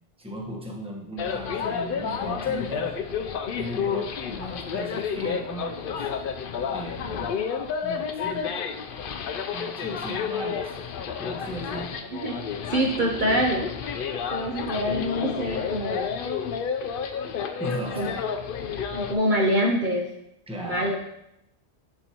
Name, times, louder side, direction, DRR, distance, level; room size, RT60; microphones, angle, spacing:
voice 1, 0.2-3.0 3.6-6.1 6.6-7.3 7.8-8.6 9.5-10.8 11.2-12.0 17.6-18.3 20.5-21.0, equal, 5° right, 0 dB, 1.0 m, -36 dB
sound 1, 1.2-19.1, left 6 dB, 60° left, 0.7 m, -30 dB
voice 2, 12.2-13.6 14.3-16.1 18.0-18.1 18.9-20.1 20.6-21.0, equal, 50° right, 0 dB, 0.9 m, -25 dB
11.0 x 4.6 x 2.9 m, 0.82 s
omnidirectional pair, 1.2 m